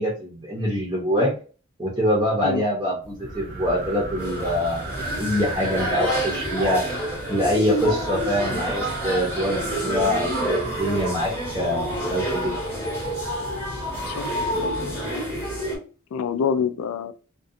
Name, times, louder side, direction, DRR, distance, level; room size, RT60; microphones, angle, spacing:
voice 1, 0.0-1.3 1.8-6.8 7.3-12.6, equal, 20° right, 0.6 m, -24 dB
sound 1, 3.0-15.2, right 1 dB, 55° right, 0.7 m, -33 dB
sound 2, 4.2-15.8, equal, 10° left, 0.8 m, -29 dB
voice 2, 14.1-14.7 16.1-17.1, left 6 dB, 80° left, 0.3 m, -26 dB
2.6 x 2.2 x 2.5 m
head